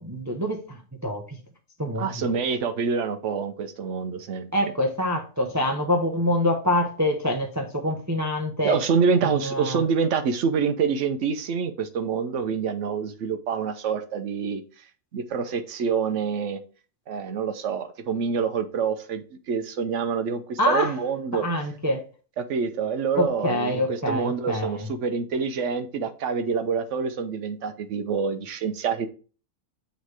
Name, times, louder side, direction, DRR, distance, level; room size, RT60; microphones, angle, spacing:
voice 1, 0.0-1.4 1.8-2.3 4.5-8.7 9.2-9.8 20.6-21.0 21.3-22.0 23.1-24.9, left 1 dB, 20° right, 3 dB, 0.5 m, -26 dB
voice 2, 2.0-4.5 8.6-14.6 15.1-16.6 17.1-21.5 22.4-29.1, right 6 dB, 60° right, 9 dB, 1.0 m, -26 dB
6.5 x 3.2 x 4.7 m, 0.37 s
omnidirectional pair, 1.5 m